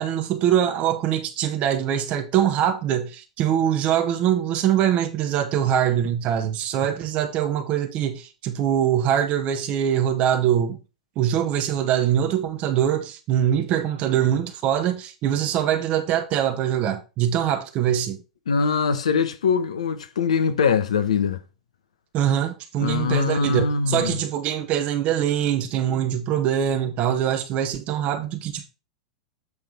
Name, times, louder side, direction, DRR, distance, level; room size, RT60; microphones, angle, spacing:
voice 1, 0.0-10.8 11.2-18.2 22.1-28.7, right 10 dB, 40° right, 0.9 m, -23 dB
voice 2, 18.5-21.4 22.8-24.2, left 5 dB, 75° left, 0.9 m, -22 dB
8.0 x 3.6 x 5.3 m
hypercardioid pair, 95°, 3 cm